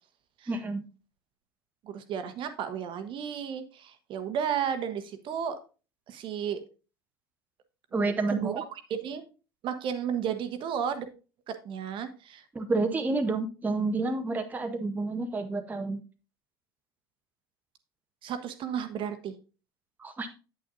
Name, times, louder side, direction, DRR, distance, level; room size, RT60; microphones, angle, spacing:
voice 1, 0.5-0.8 7.9-8.6 12.5-16.0 20.0-20.3, right 3 dB, 15° right, 5 dB, 0.8 m, -29 dB
voice 2, 1.8-5.6 6.1-6.6 8.3-8.6 8.9-9.2 9.6-11.1 11.5-12.4 18.2-19.3, right 8 dB, 40° right, 9 dB, 1.0 m, -33 dB
8.6 x 8.4 x 2.5 m, 0.33 s
figure-of-eight pair, 70°, 13 cm